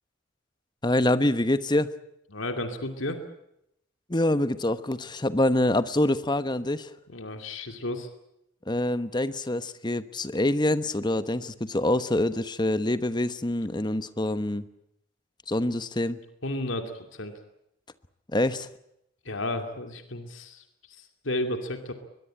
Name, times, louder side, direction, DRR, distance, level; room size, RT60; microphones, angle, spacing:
voice 1, 0.8-1.9 4.1-6.9 8.7-14.6 15.5-16.2 18.3-18.7, left 1 dB, 20° left, 13 dB, 1.1 m, -25 dB
voice 2, 2.3-3.2 7.1-8.1 16.4-17.3 19.2-21.9, left 1 dB, 80° left, 6 dB, 2.6 m, -33 dB
22.0 x 22.0 x 8.8 m, 0.81 s
head